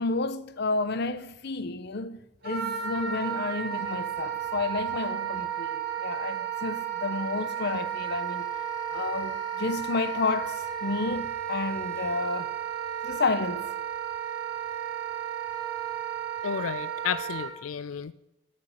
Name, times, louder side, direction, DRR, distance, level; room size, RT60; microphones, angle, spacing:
voice 1, 0.0-8.5 8.9-12.5 13.0-13.7, left 3 dB, 55° left, 0.8 m, -31 dB
Wind instrument woodwind instrument, 2.4-17.5, right 9 dB, 50° right, 4.3 m, -33 dB
voice 2, 16.4-18.1, left 7 dB, 90° left, 0.4 m, -32 dB
13.0 x 6.7 x 7.9 m
head